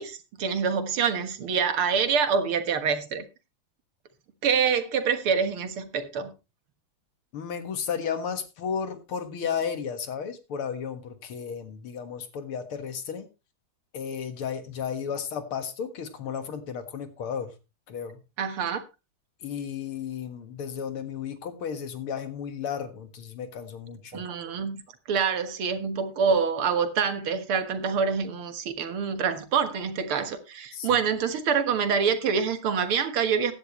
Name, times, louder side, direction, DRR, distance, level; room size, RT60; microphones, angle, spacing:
voice 1, 0.0-3.2 4.4-6.3 18.4-18.8 24.1-24.8 25.1-33.5, right 6 dB, 85° right, 2.3 m, -26 dB
voice 2, 7.3-13.3 13.9-17.5 17.9-18.2 19.4-24.2 30.7-31.0, left 7 dB, 85° left, 2.5 m, -33 dB
15.5 x 10.5 x 3.1 m
omnidirectional pair, 2.3 m